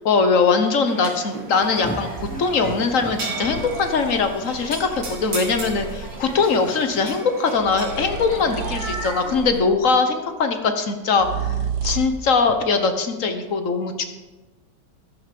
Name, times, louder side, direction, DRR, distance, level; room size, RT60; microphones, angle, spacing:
voice 1, 0.0-11.5 11.8-14.0, left 4 dB, 50° left, 7 dB, 1.4 m, -21 dB
sound 1, 0.9-9.6, right 3 dB, 85° right, 3.2 m, -35 dB
sound 2, 1.6-7.2, equal, 10° left, 0.5 m, -38 dB
sound 3, 2.1-2.5 3.4-6.4 7.6-9.8 11.2-12.3, right 7 dB, 60° right, 1.6 m, -32 dB
14.0 x 11.0 x 5.3 m, 1.2 s
omnidirectional pair, 1.9 m